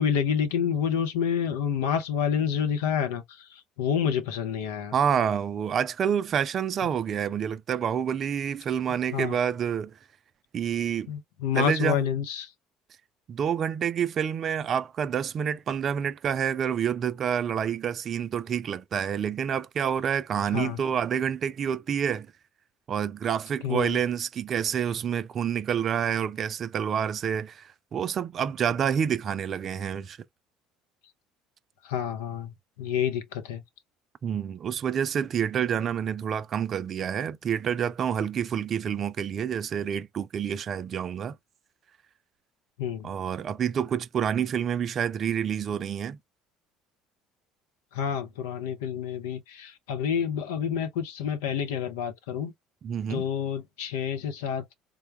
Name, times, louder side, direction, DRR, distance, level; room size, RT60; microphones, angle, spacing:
voice 1, 0.0-4.9 9.1-9.4 11.1-12.5 20.5-20.8 23.6-24.0 31.8-32.5 32.8-33.6 42.8-43.1 47.9-52.5 53.1-54.7, left 8 dB, 75° left, 0.6 m, -28 dB
voice 2, 4.9-9.9 10.5-11.1 11.5-12.0 13.3-22.3 22.9-30.2 34.2-41.4 43.0-46.2 52.8-53.3, right 8 dB, 45° right, 0.3 m, -28 dB
3.6 x 2.2 x 3.0 m
figure-of-eight pair, 60°, 0 cm